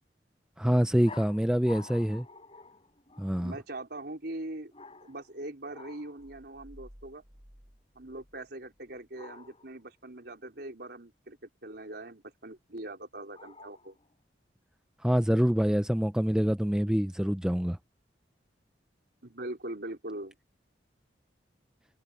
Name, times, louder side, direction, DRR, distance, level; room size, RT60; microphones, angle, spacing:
voice 1, 0.6-2.3 3.2-3.5 15.0-17.8, equal, 5° right, 0.5 m, -26 dB
sound 1, 1.0-3.5 4.7-5.4 5.7-6.2 9.1-9.8 13.3-14.1, left 4 dB, 30° left, 6.7 m, -50 dB
voice 2, 3.4-4.7 5.0-7.2 7.9-14.0 19.2-20.3, right 1 dB, 60° right, 4.4 m, -41 dB
sound 2, 6.2-9.0, equal, 30° right, 4.7 m, -55 dB
head